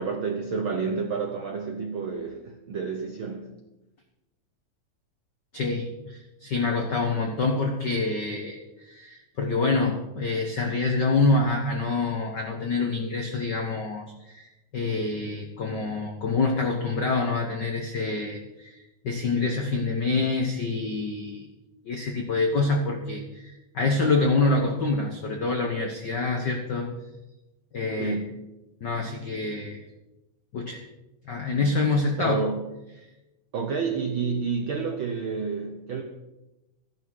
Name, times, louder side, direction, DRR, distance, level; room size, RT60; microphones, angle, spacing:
voice 1, 0.0-3.5 28.0-28.3 32.2-32.6 33.5-36.0, right 5 dB, 70° right, 3 dB, 1.2 m, -29 dB
voice 2, 5.5-21.5 21.8-26.9 27.7-28.1 28.8-29.8 30.5-30.8 31.2-32.4, left 3 dB, 75° left, 2 dB, 1.0 m, -26 dB
14.0 x 11.0 x 4.7 m, 0.99 s
omnidirectional pair, 3.6 m